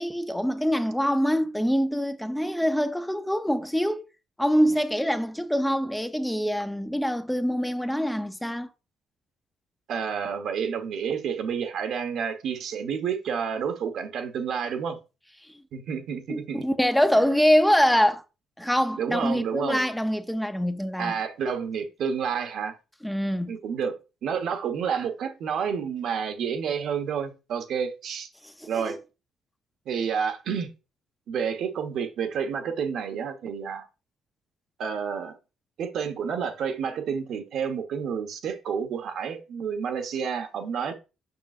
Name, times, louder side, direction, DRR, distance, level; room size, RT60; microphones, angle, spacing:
voice 1, 0.0-4.0 4.4-8.7 16.3-18.2 18.6-21.1 23.0-23.5 28.6-29.0, equal, 5° left, 0.7 m, -24 dB
voice 2, 9.9-15.0 15.7-16.6 19.0-19.8 21.0-22.8 23.5-24.0 24.2-28.3 28.6-29.0 29.8-30.7 31.3-33.9 34.8-35.3 35.8-40.9, right 7 dB, 70° right, 1.2 m, -29 dB
6.8 x 6.1 x 2.5 m
cardioid pair, 100°, 0 cm